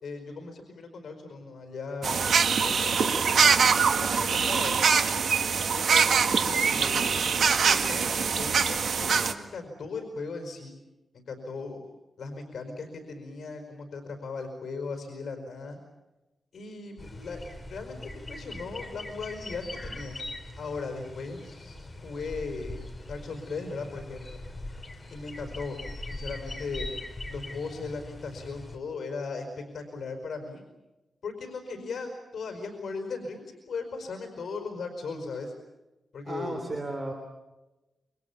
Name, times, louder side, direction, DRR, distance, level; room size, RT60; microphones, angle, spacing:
voice 1, 0.0-3.4 3.9-4.8 5.8-10.7 11.1-11.8 12.2-15.8 16.5-20.2 20.6-21.8 22.0-22.8 23.1-24.4 25.1-25.8 26.1-26.9 27.3-30.6 31.2-35.5 36.1-36.6, left 4 dB, 70° left, 4 dB, 4.9 m, -38 dB
sound 1, 2.0-9.3, right 6 dB, 80° right, 1.8 m, -23 dB
sound 2, 17.0-28.8, left 1 dB, 20° left, 3.6 m, -41 dB
voice 2, 36.2-37.1, right 2 dB, 25° right, 3 dB, 3.4 m, -34 dB
28.5 x 24.5 x 7.2 m, 1.0 s
wide cardioid pair, 160°, 0 cm